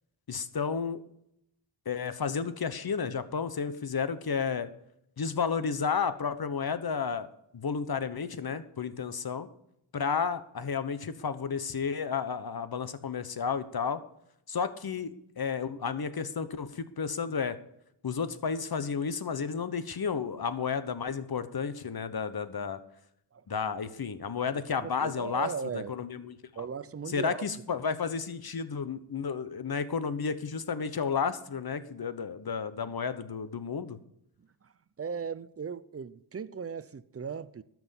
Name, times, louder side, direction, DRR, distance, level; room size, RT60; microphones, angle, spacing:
voice 1, 0.3-1.0 1.8-4.7 5.2-9.5 9.9-14.0 14.5-17.6 18.0-22.8 23.5-26.7 27.1-34.0, left 6 dB, 50° left, 1.1 m, -32 dB
voice 2, 24.8-25.9 26.6-27.5 27.7-27.8 34.4-34.7 35.0-37.6, right 6 dB, 30° right, 0.5 m, -37 dB
13.0 x 6.2 x 7.1 m
wide cardioid pair, 90°, 48 cm